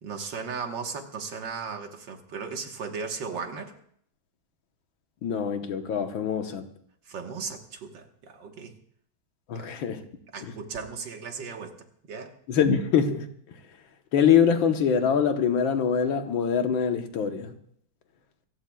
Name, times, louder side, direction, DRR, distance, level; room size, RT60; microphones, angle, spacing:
voice 1, 0.0-3.7 7.1-8.7 9.5-9.7 10.3-12.4, right 5 dB, 70° right, 2.1 m, -36 dB
voice 2, 5.2-6.7 9.5-10.0 12.5-13.3 14.1-17.5, left 7 dB, 85° left, 1.9 m, -24 dB
27.5 x 15.0 x 2.3 m
omnidirectional pair, 2.1 m